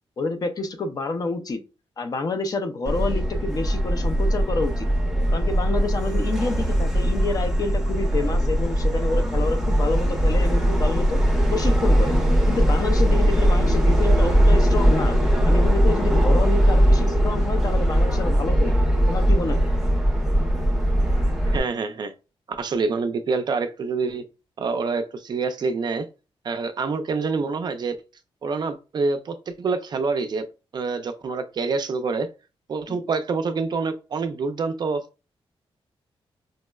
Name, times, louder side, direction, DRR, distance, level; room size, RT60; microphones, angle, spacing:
voice 1, 0.2-1.6 2.0-4.9 5.3-11.2 11.5-12.1 12.5-15.2 15.5-18.8 19.1-19.7 32.9-33.0, left 3 dB, 40° left, 7 dB, 0.4 m, -28 dB
Subway metro underground, 2.9-21.6, equal, 5° right, 0.6 m, -20 dB
voice 2, 21.5-22.1 22.6-24.2 24.6-26.1 26.4-28.0 28.4-30.4 30.7-32.3 32.7-35.0, right 4 dB, 45° right, 8 dB, 0.4 m, -26 dB
5.1 x 2.0 x 2.2 m, 0.31 s
wide cardioid pair, 145°, 10 cm